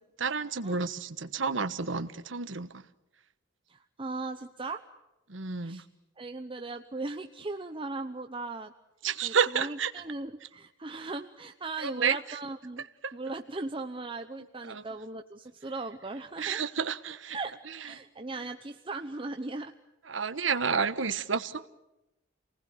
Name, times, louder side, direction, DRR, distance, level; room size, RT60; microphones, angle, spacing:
voice 1, 0.2-2.8 5.3-5.8 9.0-9.9 11.8-12.2 13.0-13.1 14.7-14.8 16.4-17.4 20.1-21.7, right 5 dB, 85° right, 12 dB, 1.2 m, -30 dB
voice 2, 3.7-4.8 5.6-5.9 6.2-8.7 9.2-12.9 13.1-16.6 17.3-17.5 17.8-19.7, right 3 dB, 30° right, 6 dB, 0.9 m, -38 dB
28.0 x 19.5 x 9.5 m, 0.96 s
head